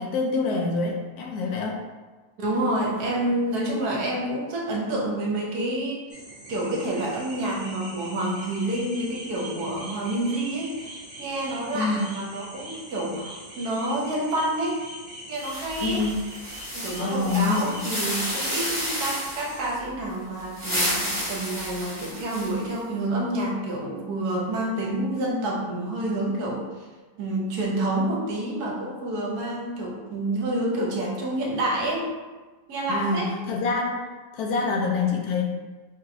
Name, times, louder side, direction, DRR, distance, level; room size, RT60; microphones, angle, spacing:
voice 1, 0.0-1.8 11.7-12.1 15.8-16.2 17.0-17.8 32.9-34.0 34.3-35.4, left 4 dB, 70° left, 0 dB, 1.1 m, -26 dB
voice 2, 2.4-6.0 6.5-14.8 15.3-16.0 16.7-26.7 27.2-32.1 32.7-33.3, right 1 dB, 70° right, -2 dB, 1.3 m, -28 dB
sound 1, 6.1-19.7, right 1 dB, 40° right, 1.0 m, -42 dB
sound 2, 15.4-19.6 20.4-22.7, equal, 10° left, 1.0 m, -31 dB
5.3 x 3.0 x 2.6 m, 1.3 s
omnidirectional pair, 1.8 m